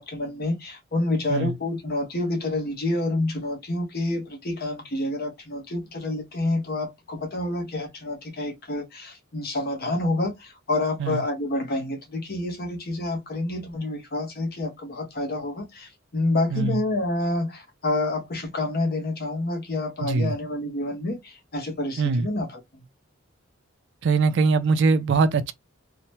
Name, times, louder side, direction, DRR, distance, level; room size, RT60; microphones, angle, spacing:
voice 1, 0.0-22.6, left 2 dB, 50° left, 0.9 m, -28 dB
voice 2, 20.0-20.3 22.0-22.3 24.0-25.5, right 4 dB, 60° right, 0.4 m, -22 dB
2.7 x 2.1 x 3.0 m
head